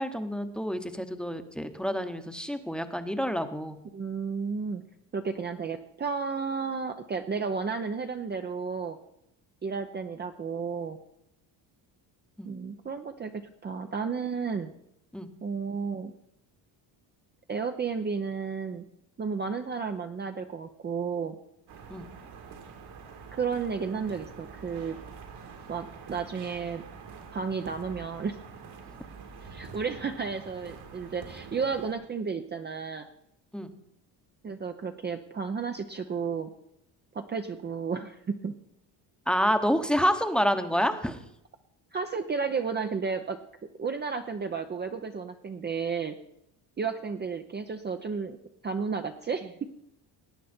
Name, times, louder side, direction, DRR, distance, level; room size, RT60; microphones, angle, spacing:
voice 1, 0.0-3.8 12.4-12.5 15.1-15.3 21.9-22.1 33.5-33.7 39.3-41.2, equal, ahead, 9 dB, 1.0 m, -28 dB
voice 2, 3.9-4.8 5.1-9.0 9.6-11.0 12.5-13.3 13.6-14.7 15.4-16.1 17.5-18.9 19.2-21.4 23.3-25.0 25.7-26.8 27.3-28.4 29.4-33.1 34.4-36.5 37.1-38.5 41.9-43.4 43.8-46.1 46.8-48.4 48.6-49.5, right 5 dB, 25° right, 6 dB, 0.7 m, -32 dB
sound 1, 21.7-31.9, right 5 dB, 65° right, 2.4 m, -46 dB
18.0 x 9.1 x 4.4 m, 0.77 s
cardioid pair, 110°, 43 cm